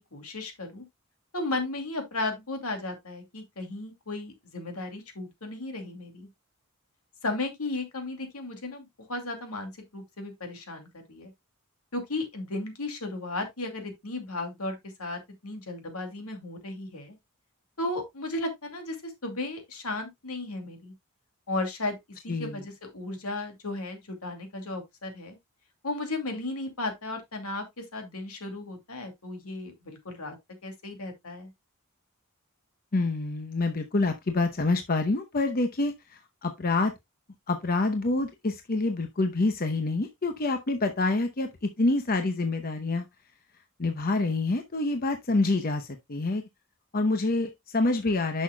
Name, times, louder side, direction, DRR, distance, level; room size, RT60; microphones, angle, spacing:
voice 1, 0.1-0.8 1.3-6.3 7.2-11.3 11.9-17.2 17.8-20.9 21.5-22.0 22.2-25.4 25.8-30.4 30.6-31.5, left 2 dB, 80° left, 2.4 m, -35 dB
voice 2, 22.3-22.6 32.9-36.9 37.5-43.1 43.8-46.4 46.9-48.4, left 2 dB, 40° left, 0.8 m, -27 dB
10.0 x 6.5 x 2.2 m
head